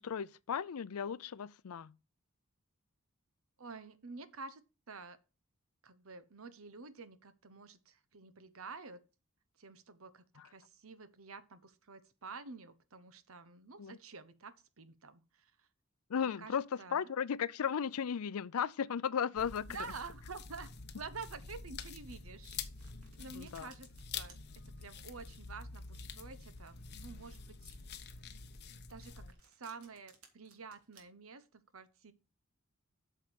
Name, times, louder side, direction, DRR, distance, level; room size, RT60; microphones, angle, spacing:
voice 1, 0.0-1.9 13.8-14.0 16.1-19.7 23.3-23.7, left 7 dB, 90° left, 0.5 m, -35 dB
voice 2, 3.6-5.2 5.8-9.0 9.6-15.7 16.2-17.1 19.7-22.6 23.2-24.4 24.6-27.8 28.9-32.1, right 4 dB, 70° right, 1.0 m, -49 dB
sound 1, 19.4-29.3, left 5 dB, 50° left, 1.0 m, -47 dB
Domestic sounds home sounds, 22.3-31.0, right 5 dB, 90° right, 2.7 m, -64 dB
8.4 x 6.6 x 5.1 m
head